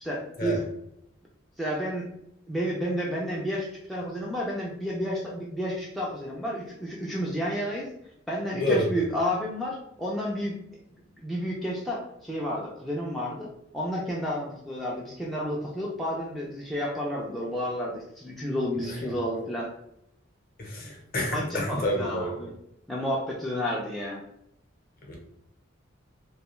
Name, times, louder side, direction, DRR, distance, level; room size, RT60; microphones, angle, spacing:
voice 1, 0.0-0.6 1.6-2.1 2.5-7.9 8.3-10.6 11.2-13.5 13.7-19.7 20.8-20.9 21.3-22.5 22.9-24.2, equal, ahead, -5 dB, 0.3 m, -31 dB
voice 2, 8.5-9.0 19.0-19.1 20.6-22.4 25.1-25.2, left 1 dB, 45° left, 0 dB, 0.7 m, -28 dB
2.3 x 2.2 x 3.0 m, 0.77 s
head